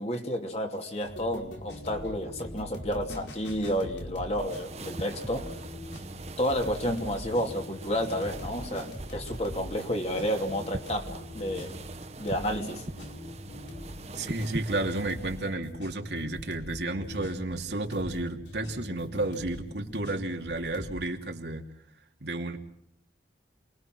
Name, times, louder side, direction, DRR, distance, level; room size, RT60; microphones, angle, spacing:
voice 1, 0.0-5.5 6.4-11.8 12.2-12.8, equal, 35° left, 2.7 m, -31 dB
sound 1, 1.0-20.9, left 1 dB, 90° left, 4.9 m, -43 dB
sound 2, 4.4-15.6, right 2 dB, 35° right, 1.1 m, -42 dB
voice 2, 14.1-21.7 22.2-22.6, right 2 dB, 75° right, 2.7 m, -32 dB
28.0 x 21.5 x 6.2 m
head